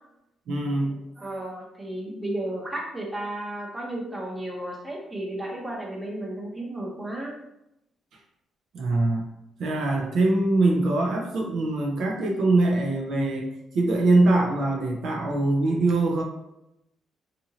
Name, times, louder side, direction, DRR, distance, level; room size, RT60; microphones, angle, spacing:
voice 1, 0.5-1.0 8.7-9.3 9.6-16.2, right 2 dB, 70° right, 0 dB, 0.5 m, -23 dB
voice 2, 1.2-7.3, right 1 dB, 15° right, -2 dB, 0.8 m, -33 dB
2.8 x 2.5 x 2.7 m, 0.86 s
cardioid pair, 90°, 0 cm